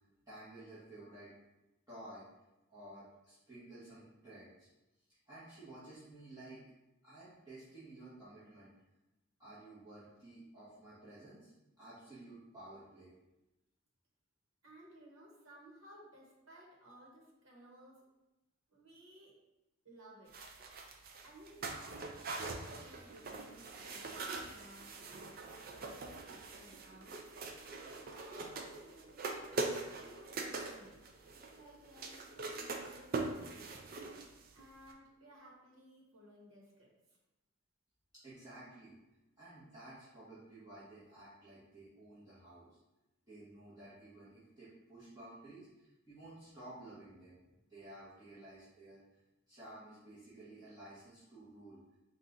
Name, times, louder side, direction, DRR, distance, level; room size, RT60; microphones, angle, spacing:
voice 1, 0.3-1.3 1.9-2.3 2.7-4.7 5.3-6.6 7.0-8.7 9.4-11.5 11.8-13.1 38.2-39.0 39.4-42.8 43.2-47.4 47.7-49.0 49.5-51.8, right 1 dB, 20° right, -13 dB, 1.1 m, -53 dB
voice 2, 14.6-18.0 18.7-19.3 19.8-20.4 21.2-22.0 22.3-27.5 27.8-29.5 29.9-31.0 31.3-33.8 34.5-37.2, right 1 dB, 85° right, -3 dB, 1.1 m, -58 dB
sound 1, 20.3-34.6 34.9-35.0, right 3 dB, 45° right, 0.4 m, -43 dB
4.1 x 2.4 x 3.8 m, 0.98 s
head